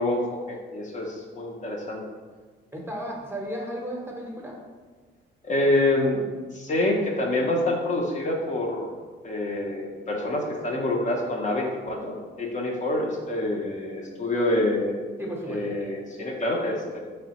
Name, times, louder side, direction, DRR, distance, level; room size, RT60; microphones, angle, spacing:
voice 1, 0.0-2.0 5.4-6.3 6.5-8.9 9.2-15.0 15.5-17.0, left 1 dB, 40° left, 0 dB, 0.6 m, -26 dB
voice 2, 2.7-4.6 15.2-15.6, equal, 10° right, -1 dB, 0.7 m, -34 dB
3.5 x 3.1 x 2.9 m, 1.4 s
cardioid pair, 90°, 20 cm